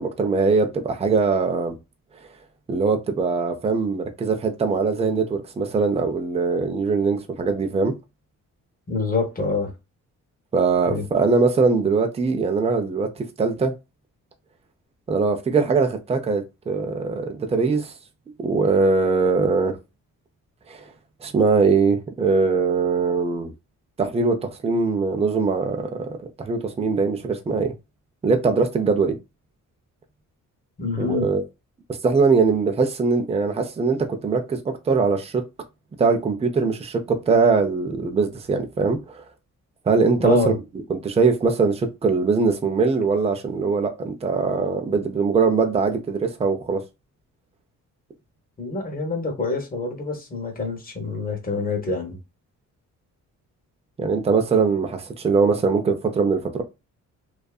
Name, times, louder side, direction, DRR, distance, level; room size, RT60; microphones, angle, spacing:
voice 1, 0.0-1.8 2.7-7.9 10.5-13.7 15.1-17.9 18.4-19.8 20.7-20.9 21.2-23.5 24.0-27.7 28.2-29.2 31.0-31.4 32.0-35.4 36.0-39.2 39.9-40.4 40.9-46.8 54.0-56.6, right 4 dB, 20° right, 0.4 m, -21 dB
voice 2, 8.9-9.7 10.9-11.0 30.8-31.3 40.2-40.6 48.6-52.2, left 3 dB, 25° left, 0.9 m, -26 dB
2.6 x 2.4 x 2.3 m
cardioid pair, 110°, 32 cm